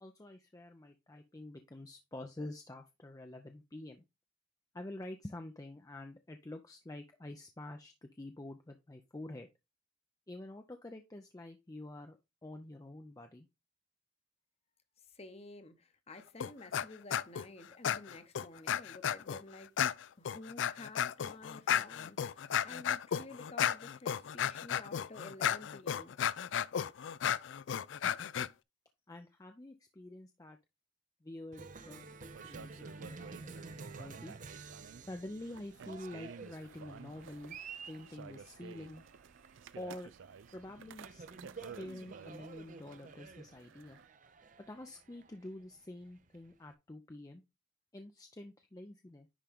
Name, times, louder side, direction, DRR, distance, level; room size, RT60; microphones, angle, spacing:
voice 1, 0.0-4.0 4.7-9.5 10.3-13.5 28.0-28.1 29.1-30.6 31.2-34.4 35.1-37.6 37.9-39.0 39.8-40.1 40.5-41.2 41.6-44.0 44.7-47.4 47.9-49.3, left 1 dB, 20° left, 0.5 m, -47 dB
voice 2, 15.1-19.7 20.2-26.1, left 2 dB, 35° left, 0.9 m, -51 dB
sound 1, 16.4-16.9 17.1-17.5 17.8-19.4 19.8-28.5, left 9 dB, 75° left, 0.4 m, -33 dB
Cheering, 31.5-46.7, right 4 dB, 45° right, 0.6 m, -51 dB
sound 2, 32.3-44.1, right 6 dB, 90° right, 0.4 m, -53 dB
10.0 x 3.7 x 3.5 m
head